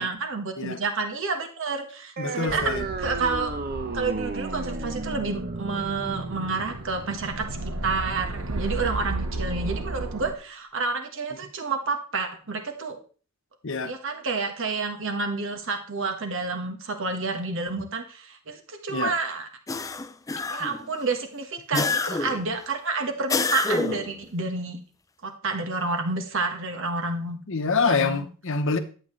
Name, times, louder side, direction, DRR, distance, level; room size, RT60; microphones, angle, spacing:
voice 1, 0.0-3.5 3.9-13.0 13.8-19.5 20.5-24.8 25.2-27.4 27.8-28.3, right 4 dB, 65° right, 1.4 m, -29 dB
voice 2, 2.2-2.9 13.6-13.9 18.9-19.1 21.7-21.9 27.5-28.8, left 4 dB, 65° left, 0.9 m, -26 dB
sound 1, 2.2-9.2, right 3 dB, 45° right, 0.8 m, -34 dB
sound 2, 2.5-10.3, right 2 dB, 85° right, 1.0 m, -34 dB
sound 3, 19.7-20.9 21.7-22.5 23.3-24.1, left 3 dB, 15° left, 0.4 m, -27 dB
11.0 x 8.0 x 3.2 m
head